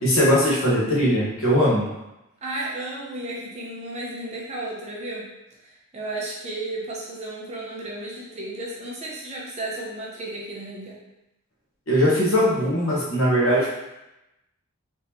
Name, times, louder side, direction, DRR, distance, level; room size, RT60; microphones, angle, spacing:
voice 1, 0.0-1.9 11.9-13.7, equal, 65° left, -6 dB, 1.1 m, -20 dB
voice 2, 2.4-5.3 5.6-11.0, right 2 dB, 30° right, -5 dB, 0.7 m, -33 dB
3.6 x 2.9 x 2.9 m, 0.92 s
head